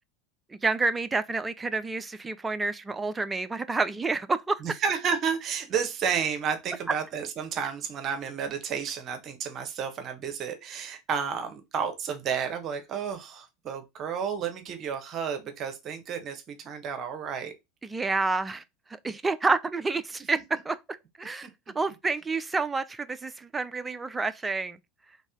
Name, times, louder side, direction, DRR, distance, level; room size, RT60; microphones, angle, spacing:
voice 1, 0.6-4.6 17.8-18.6 19.0-20.8 21.2-21.5 21.7-24.8, right 3 dB, 15° right, 0.6 m, -28 dB
voice 2, 4.6-17.5 21.4-21.8, right 7 dB, 40° right, 1.1 m, -31 dB
4.1 x 3.5 x 3.6 m
hypercardioid pair, 80°, 0 cm